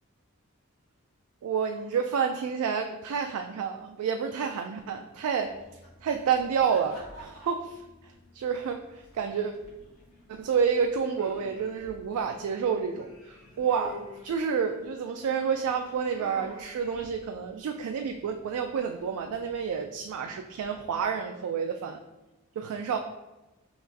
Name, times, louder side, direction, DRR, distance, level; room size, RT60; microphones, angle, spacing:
voice 1, 1.4-5.5 6.0-7.8 8.3-9.5 10.3-22.0 22.6-23.0, right 6 dB, 85° right, 4 dB, 0.3 m, -29 dB
sound 1, 5.4-21.0, left 1 dB, 90° left, 1.3 m, -51 dB
5.7 x 2.5 x 2.7 m, 1.0 s
head